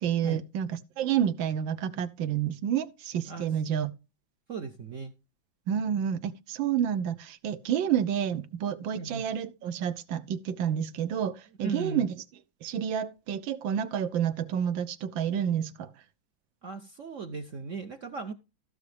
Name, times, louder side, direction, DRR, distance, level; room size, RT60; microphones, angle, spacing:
voice 1, 0.0-3.9 5.7-12.2 12.6-15.9, right 9 dB, 80° right, 1.5 m, -29 dB
voice 2, 4.5-5.1 8.9-9.3 11.6-12.0 16.6-18.3, right 4 dB, 60° right, 0.8 m, -37 dB
14.5 x 6.3 x 3.3 m
omnidirectional pair, 2.1 m